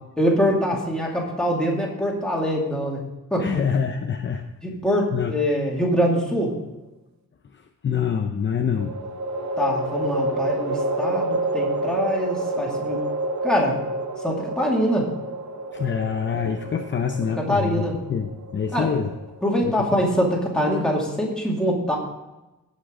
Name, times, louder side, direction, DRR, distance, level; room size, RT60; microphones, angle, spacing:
voice 1, 0.2-3.5 4.6-6.6 9.6-13.0 13.4-13.8 14.2-15.1 17.3-17.9 18.7-18.9 19.4-22.0, equal, ahead, -3 dB, 2.4 m, -24 dB
voice 2, 3.4-4.4 5.1-5.3 7.5-9.0 15.7-17.8 18.1-19.1 19.6-19.7, left 7 dB, 35° left, 5 dB, 0.6 m, -25 dB
sound 1, 5.6-6.5 8.7-20.0, right 1 dB, 60° right, 1.0 m, -29 dB
17.5 x 7.4 x 3.7 m, 1.0 s
wide cardioid pair, 170°, 32 cm